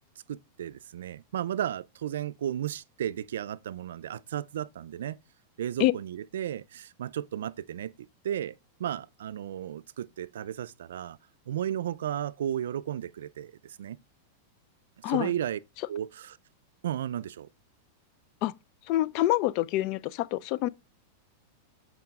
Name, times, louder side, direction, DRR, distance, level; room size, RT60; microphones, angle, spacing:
voice 1, 0.3-5.2 5.6-7.9 8.2-11.2 11.5-14.0 15.0-15.6 15.9-16.4 16.8-17.5, right 10 dB, 80° right, 0.4 m, -34 dB
voice 2, 18.9-20.7, left 15 dB, 50° left, 0.4 m, -26 dB
7.8 x 4.8 x 3.5 m
hypercardioid pair, 120°, 0 cm